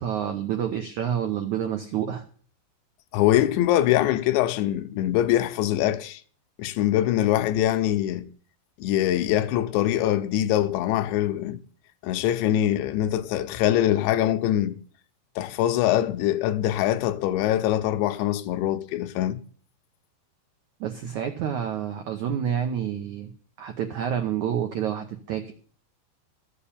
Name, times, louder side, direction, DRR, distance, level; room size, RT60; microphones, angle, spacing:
voice 1, 0.0-2.2 20.8-23.3 23.6-25.5, right 9 dB, 85° right, 1.7 m, -28 dB
voice 2, 3.1-6.2 6.6-8.3 8.8-11.6 12.0-14.8 15.4-19.4, left 12 dB, 80° left, 3.1 m, -23 dB
14.0 x 7.9 x 8.6 m
omnidirectional pair, 5.2 m